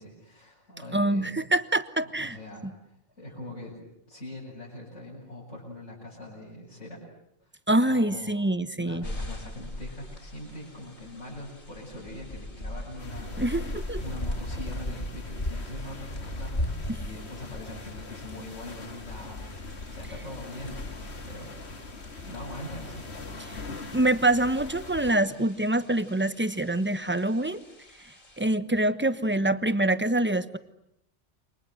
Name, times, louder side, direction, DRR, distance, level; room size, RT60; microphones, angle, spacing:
voice 1, 0.0-1.4 2.0-7.0 7.8-13.4 14.0-19.6 19.9-21.5 22.3-23.1 25.1-25.2, left 1 dB, 85° left, -6 dB, 8.1 m, -42 dB
voice 2, 0.9-2.4 2.6-2.7 7.7-9.0 13.4-14.0 16.9-17.0 23.4-23.6 23.9-27.6 28.4-30.6, right 1 dB, 10° right, 11 dB, 1.1 m, -25 dB
sound 1, 9.0-28.4, left 1 dB, 45° left, 4.2 m, -40 dB
sound 2, 13.0-25.1, left 2 dB, 65° left, 2.3 m, -40 dB
29.0 x 25.0 x 7.8 m, 0.79 s
omnidirectional pair, 1.2 m